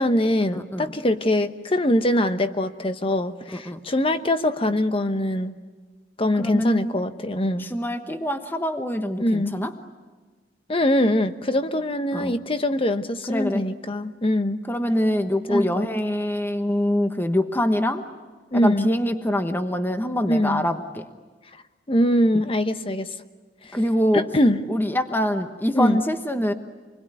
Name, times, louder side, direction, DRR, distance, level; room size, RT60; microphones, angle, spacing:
voice 1, 0.0-5.6 6.2-7.7 9.2-9.5 10.7-14.6 15.5-15.9 18.5-18.9 20.3-20.6 21.9-23.1 24.1-24.6 25.7-26.0, left 1 dB, 30° left, 10 dB, 1.0 m, -23 dB
voice 2, 0.5-0.9 3.5-3.8 6.4-7.0 7.6-9.7 12.1-12.4 13.3-13.6 14.7-18.0 18.5-21.1 22.3-22.4 23.7-24.3 24.7-26.5, left 1 dB, 10° left, 7 dB, 1.2 m, -24 dB
27.0 x 21.0 x 9.7 m, 1.4 s
head